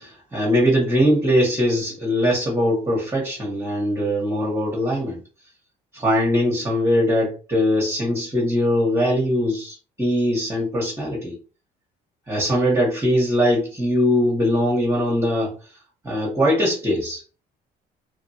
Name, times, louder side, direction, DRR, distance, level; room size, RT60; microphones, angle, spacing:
voice 1, 0.0-5.2 5.9-11.4 12.3-15.5 16.0-17.2, equal, 15° right, 1.1 m, -21 dB
3.1 x 2.5 x 2.8 m
cardioid pair, 110°, 17 cm